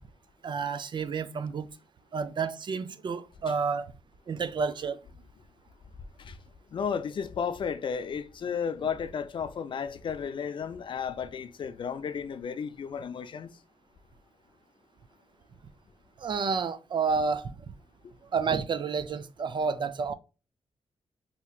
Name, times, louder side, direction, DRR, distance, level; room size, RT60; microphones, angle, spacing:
voice 1, 0.4-1.7 2.1-3.9 4.3-5.0 16.2-17.5 18.3-20.1, right 5 dB, 45° right, 0.4 m, -30 dB
voice 2, 6.7-13.5, left 7 dB, 50° left, 0.4 m, -33 dB
4.3 x 2.8 x 2.3 m
wide cardioid pair, 115°, 11 cm